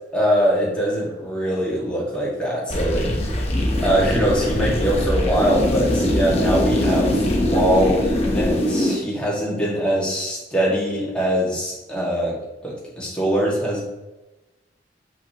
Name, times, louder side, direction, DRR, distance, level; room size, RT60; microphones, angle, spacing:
voice 1, 0.1-3.3 3.8-13.9, equal, 5° left, -6 dB, 2.1 m, -22 dB
sound 1, 2.7-9.0, left 1 dB, 35° left, 1.0 m, -22 dB
6.8 x 5.7 x 3.0 m, 1.1 s
head